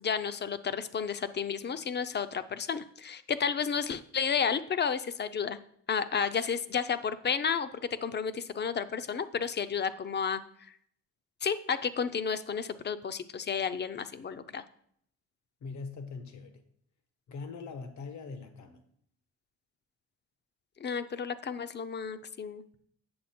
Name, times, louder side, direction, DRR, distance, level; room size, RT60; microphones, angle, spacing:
voice 1, 0.0-5.6 5.9-7.7 8.0-10.4 11.4-14.6 20.8-22.6, left 6 dB, 35° left, 13 dB, 0.6 m, -32 dB
voice 2, 15.6-16.6 17.3-18.8, left 4 dB, 70° left, 8 dB, 1.2 m, -42 dB
8.6 x 6.8 x 4.3 m, 0.67 s
cardioid pair, 90°, 30 cm